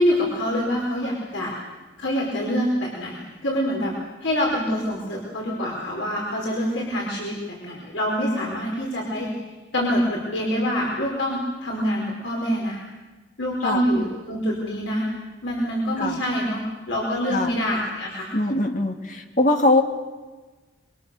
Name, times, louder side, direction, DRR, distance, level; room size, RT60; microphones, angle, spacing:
voice 1, 0.0-1.5 2.0-3.9 4.2-9.3 9.7-12.8 13.4-15.1 15.4-18.3, equal, 75° left, -2 dB, 5.0 m, -25 dB
voice 2, 18.3-19.8, left 2 dB, 40° left, 4 dB, 2.1 m, -21 dB
26.5 x 24.5 x 7.0 m, 1.3 s
head